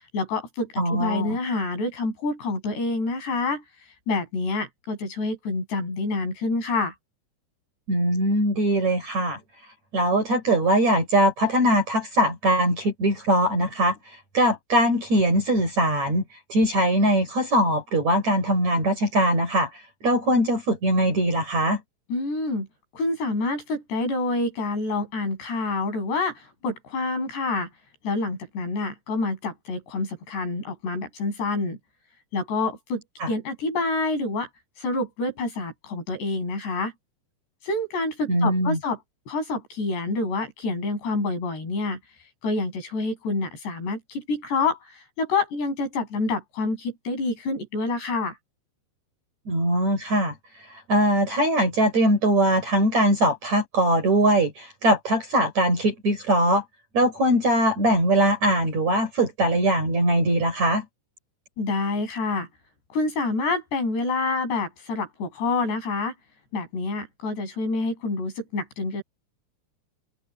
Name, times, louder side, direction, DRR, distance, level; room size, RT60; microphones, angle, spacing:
voice 1, 0.1-3.6 4.1-6.9 22.1-22.7 22.9-27.7 28.0-31.8 32.3-34.5 34.8-36.9 37.6-39.0 39.3-42.0 42.4-48.4 61.6-62.5 62.9-66.1 66.5-69.0, left 3 dB, 85° left, 9.8 m, -27 dB
voice 2, 0.8-1.4 7.9-9.4 9.9-14.0 14.3-16.2 16.5-19.7 20.0-21.8 33.2-33.3 38.3-38.8 49.5-50.3 50.9-56.6 56.9-60.8, right 1 dB, 40° right, 7.1 m, -21 dB
omnidirectional pair, 4.8 m